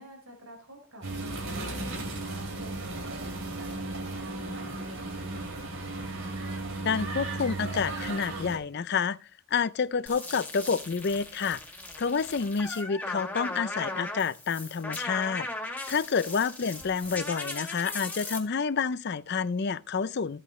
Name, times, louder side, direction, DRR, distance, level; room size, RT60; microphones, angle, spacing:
voice 1, 0.0-6.1, left 1 dB, 85° right, 4.6 m, -49 dB
sound 1, 1.0-8.6, right 2 dB, 65° right, 3.6 m, -35 dB
voice 2, 6.8-9.2 9.5-11.6 12.0-20.4, left 5 dB, 50° left, 0.5 m, -29 dB
sound 2, 10.1-18.4, left 2 dB, 5° left, 2.1 m, -38 dB
15.0 x 8.4 x 3.1 m
head